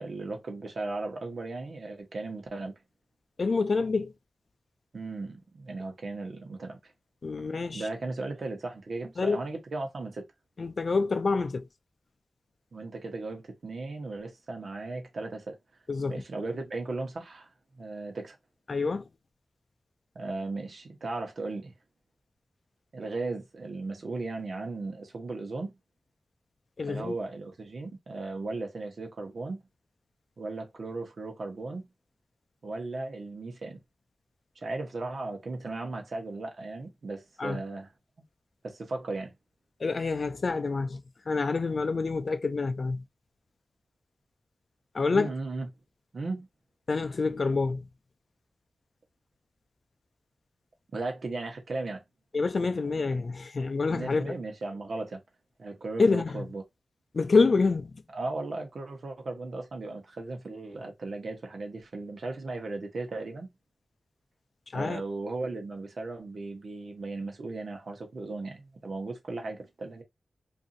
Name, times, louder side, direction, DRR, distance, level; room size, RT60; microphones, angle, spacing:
voice 1, 0.0-2.7 4.9-6.9 7.7-10.3 12.7-15.6 16.1-17.5 17.8-18.4 20.1-21.7 22.9-25.7 26.9-29.6 30.4-31.9 32.6-33.8 34.6-37.9 38.6-39.3 45.1-45.7 46.1-46.5 50.9-52.0 53.9-55.2 55.6-56.6 58.1-63.5 64.7-70.0, right 3 dB, 65° right, 0.9 m, -36 dB
voice 2, 3.4-4.1 7.2-7.9 9.2-9.4 10.6-11.7 15.9-16.2 18.7-19.1 26.8-27.1 37.4-37.6 39.8-43.0 44.9-45.3 46.9-47.8 52.3-54.3 56.0-56.4 57.1-58.0 64.7-65.0, left 4 dB, 55° left, 0.4 m, -27 dB
2.7 x 2.6 x 2.6 m
wide cardioid pair, 105°, 0 cm